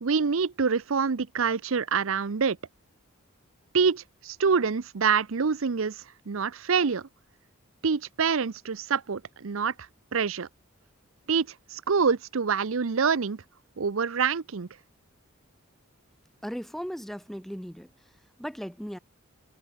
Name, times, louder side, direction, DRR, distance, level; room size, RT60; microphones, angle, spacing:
voice 1, 0.0-2.6 3.7-5.9 6.3-7.1 7.8-9.7 10.1-10.5 11.3-13.4 13.8-14.7, right 5 dB, 70° right, 0.6 m, -26 dB
voice 2, 16.4-18.1 18.4-19.0, equal, ahead, 4.9 m, -37 dB
head